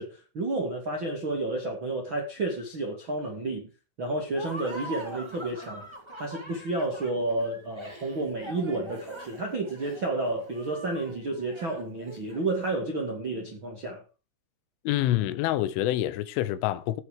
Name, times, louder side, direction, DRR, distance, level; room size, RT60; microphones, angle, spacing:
voice 1, 0.0-3.7 4.0-5.8 6.2-14.0, right 2 dB, 45° right, 1.5 m, -31 dB
Laughter, 4.3-12.6, right 1 dB, 15° right, 1.0 m, -43 dB
voice 2, 14.8-17.0, left 14 dB, 75° left, 3.3 m, -27 dB
16.0 x 6.4 x 5.1 m
omnidirectional pair, 6.0 m